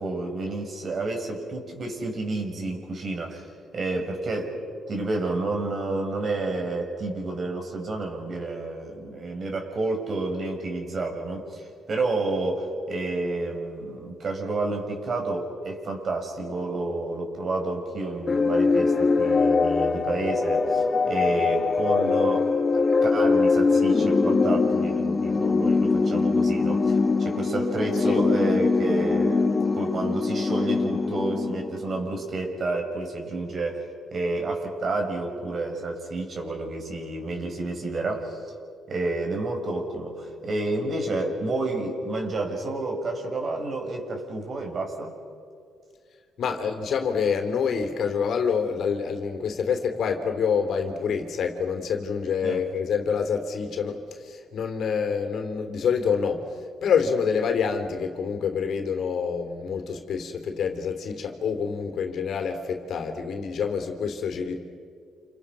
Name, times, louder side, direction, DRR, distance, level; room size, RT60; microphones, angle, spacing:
voice 1, 0.0-3.5 3.7-4.6 4.9-38.4 38.9-45.1 52.4-52.7, right 2 dB, 45° right, 2 dB, 7.0 m, -30 dB
sound 1, 18.3-32.0, left 4 dB, 35° left, 1.9 m, -22 dB
voice 2, 46.4-56.5 56.8-64.6, left 6 dB, 65° left, 6 dB, 3.5 m, -27 dB
30.0 x 29.0 x 6.4 m, 2.2 s
cardioid pair, 90°, 0 cm